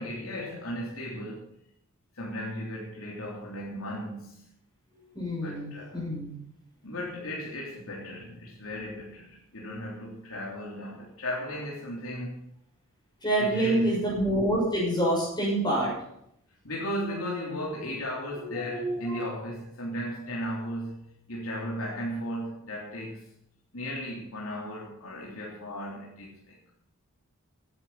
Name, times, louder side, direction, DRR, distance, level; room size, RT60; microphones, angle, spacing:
voice 1, 0.0-1.5 2.1-4.4 5.4-6.1 6.8-12.4 13.4-14.0 16.6-23.3 23.7-26.6, equal, 75° left, -4 dB, 3.5 m, -36 dB
voice 2, 5.1-6.3 13.2-15.9 18.4-19.2, right 1 dB, 20° left, -4 dB, 6.7 m, -27 dB
16.5 x 10.5 x 5.7 m, 0.73 s
head